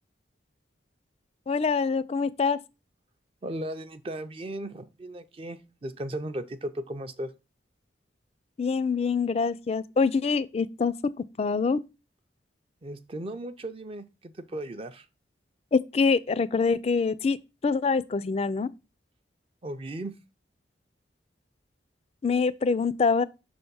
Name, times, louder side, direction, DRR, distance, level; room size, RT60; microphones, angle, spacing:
voice 1, 1.5-2.6 8.6-10.9 11.4-11.8 15.7-17.4 17.6-18.7 22.2-23.2, left 4 dB, 35° left, 0.3 m, -25 dB
voice 2, 3.4-7.3 12.8-15.1 19.6-20.2, right 1 dB, 30° right, 0.5 m, -36 dB
5.7 x 3.5 x 5.3 m
head